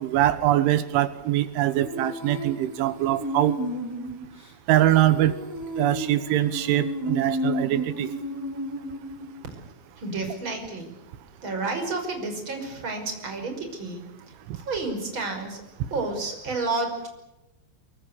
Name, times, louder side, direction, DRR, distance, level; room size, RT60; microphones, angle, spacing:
voice 1, 0.0-3.5 4.7-5.3 5.8-8.1, right 13 dB, 80° right, 13 dB, 3.5 m, -23 dB
Female singing, 1.8-9.4, equal, 5° right, 3.5 m, -33 dB
voice 2, 10.0-10.9 11.4-14.0 14.5-15.6 15.9-17.1, right 3 dB, 25° right, 4 dB, 5.9 m, -30 dB
24.0 x 23.5 x 8.1 m, 0.95 s
omnidirectional pair, 5.6 m